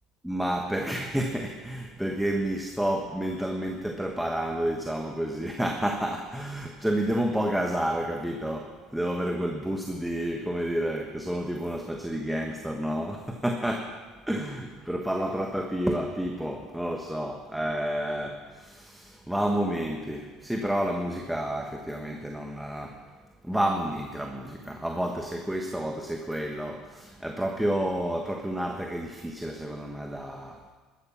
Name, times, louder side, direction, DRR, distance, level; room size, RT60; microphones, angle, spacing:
voice 1, 0.2-14.0 14.3-23.0 23.4-30.6, right 1 dB, 5° right, 2 dB, 1.4 m, -30 dB
13.5 x 13.0 x 5.8 m, 1.4 s
supercardioid pair, 95°, 0 cm